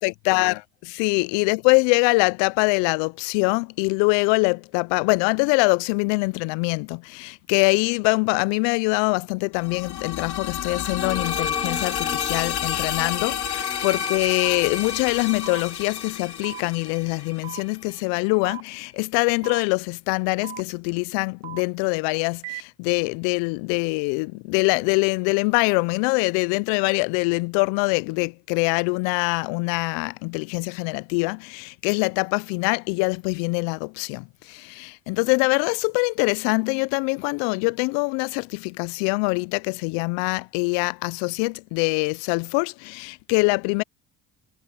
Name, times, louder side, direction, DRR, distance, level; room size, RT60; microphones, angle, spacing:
voice 1, 0.0-43.8, left 30 dB, 75° left, 0.6 m, -24 dB
sound 1, 9.6-17.4, left 10 dB, 60° left, 4.3 m, -30 dB
sound 2, 10.9-18.3, left 4 dB, 15° left, 3.2 m, -36 dB
sound 3, 14.4-14.6 15.4-15.6 16.4-16.6 17.4-17.6 18.4-18.6 19.4-19.6 20.4-20.6 21.4-21.6 22.4-22.6, right 12 dB, 70° right, 3.0 m, -36 dB
hypercardioid pair, 60°, 44 cm